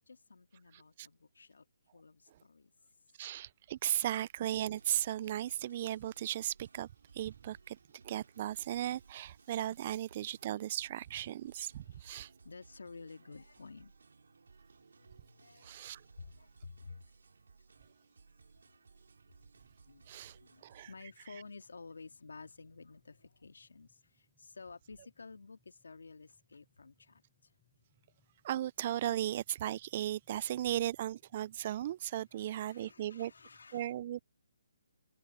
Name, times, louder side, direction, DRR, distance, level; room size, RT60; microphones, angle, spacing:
voice 1, 0.0-1.7 1.9-2.7 11.8-13.9 14.9-15.8 16.2-17.1 19.9-27.5 32.3-33.9, left 4 dB, 90° left, 2.0 m, -53 dB
voice 2, 0.7-1.1 3.2-6.9 7.1-7.8 8.0-12.3 15.6-16.0 20.1-20.4 20.6-21.3 28.4-33.3 33.7-34.2, right 12 dB, 30° right, 0.3 m, -36 dB
sound 1, 4.5-20.9, right 4 dB, 80° right, 6.2 m, -62 dB
sound 2, 19.4-33.7, left 1 dB, ahead, 7.1 m, -77 dB
hypercardioid pair, 165°, 0 cm